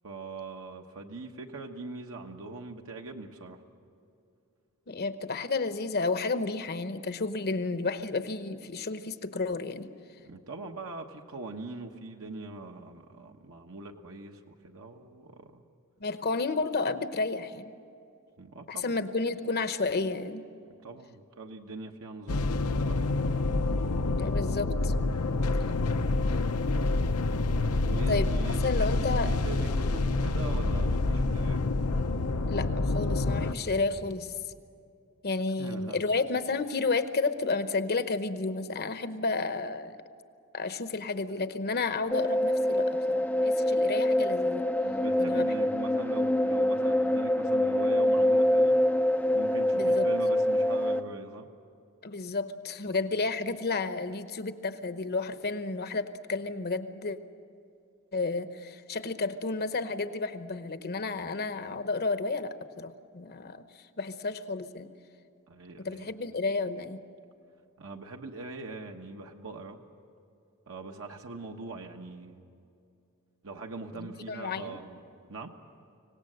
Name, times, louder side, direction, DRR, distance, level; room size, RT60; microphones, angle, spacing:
voice 1, 0.0-3.6 10.2-15.6 18.4-19.0 20.8-23.1 27.8-31.6 35.6-36.0 44.8-48.8 49.3-51.5 52.9-53.0 65.5-66.1 67.8-69.8 70.7-72.4 73.4-75.0 75.3-75.5, right 3 dB, 65° right, 2 dB, 1.2 m, -42 dB
voice 2, 4.9-9.9 16.0-17.7 18.7-20.4 24.2-24.9 28.1-28.3 28.6-29.3 32.5-34.4 35.2-40.0 40.5-44.6 45.2-45.5 49.7-50.1 52.0-57.2 58.1-64.9 65.8-67.0 73.9-74.8, left 3 dB, 45° left, 10 dB, 0.9 m, -31 dB
sound 1, 22.3-33.5, left 2 dB, 80° left, 0.8 m, -27 dB
sound 2, 42.1-51.0, left 1 dB, 5° left, 0.5 m, -25 dB
25.0 x 18.0 x 7.9 m, 2.5 s
head